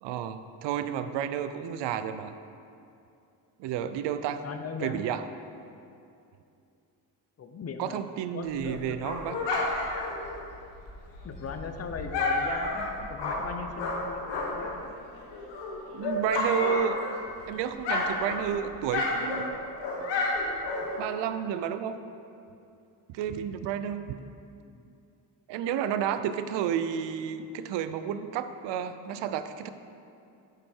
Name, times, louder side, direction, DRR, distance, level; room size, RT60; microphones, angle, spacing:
voice 1, 0.0-2.4 3.6-4.4 4.8-5.2 7.8-9.4 15.9-17.0 17.5-19.6 21.0-22.0 23.1-24.2 25.5-29.7, right 9 dB, 80° right, 11 dB, 0.6 m, -31 dB
voice 2, 4.4-5.1 7.4-8.0 8.3-9.0 11.2-14.9 24.6-24.8, left 5 dB, 35° left, 6 dB, 0.8 m, -39 dB
Dog, 8.5-14.8 15.1-17.4 17.7-21.1, left 2 dB, 85° left, 1.5 m, -31 dB
7.7 x 7.6 x 4.5 m, 2.6 s
cardioid pair, 85°, 42 cm